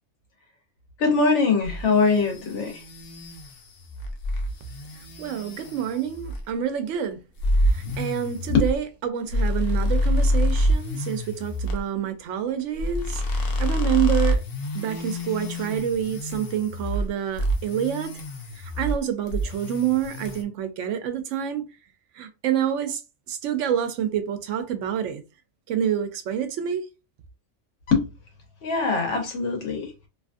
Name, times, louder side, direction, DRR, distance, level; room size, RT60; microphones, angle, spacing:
voice 1, 1.0-2.8 7.8-7.9 8.5-8.6 27.9-28.1 28.6-29.9, left 4 dB, 75° left, 1.2 m, -22 dB
sound 1, 1.6-6.5 7.4-11.8 12.8-17.1 17.3-19.0 19.3-20.4, equal, 60° left, 0.8 m, -27 dB
voice 2, 5.2-7.2 7.7-14.4 14.7-18.1 18.6-21.6 22.2-23.0 23.3-25.2 25.7-26.8, right 9 dB, 85° right, 0.9 m, -27 dB
2.8 x 2.4 x 2.5 m
omnidirectional pair, 1.2 m